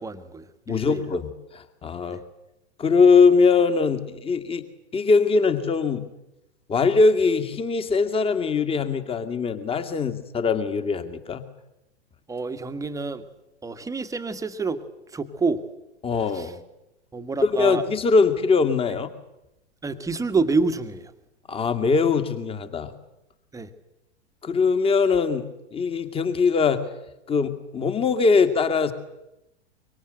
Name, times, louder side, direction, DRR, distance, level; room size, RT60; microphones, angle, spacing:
voice 1, 0.0-1.0 2.1-2.2 12.3-13.2 13.6-14.8 15.1-15.6 16.3-16.5 17.1-17.8 19.8-21.1 23.5-23.7, right 4 dB, 10° right, 11 dB, 1.6 m, -27 dB
voice 2, 0.7-2.2 2.8-4.6 4.9-6.1 6.7-11.5 16.0-16.6 17.4-19.1 21.5-22.9 24.4-26.8 27.3-28.9, left 4 dB, 15° left, 10 dB, 2.2 m, -21 dB
25.0 x 24.5 x 8.0 m, 0.91 s
figure-of-eight pair, 95°, 33 cm